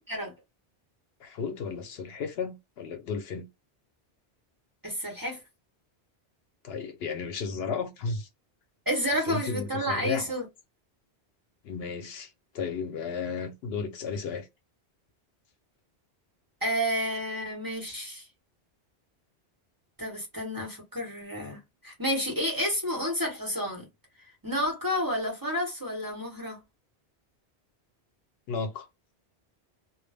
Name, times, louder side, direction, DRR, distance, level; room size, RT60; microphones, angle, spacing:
voice 1, 1.2-3.4 6.6-8.3 9.2-10.3 11.6-14.5 28.5-28.9, left 5 dB, 70° left, 0.8 m, -34 dB
voice 2, 4.8-5.4 8.9-10.4 16.6-18.3 20.0-23.9 24.4-26.6, equal, 20° right, 0.9 m, -30 dB
2.2 x 2.0 x 3.2 m
omnidirectional pair, 1.1 m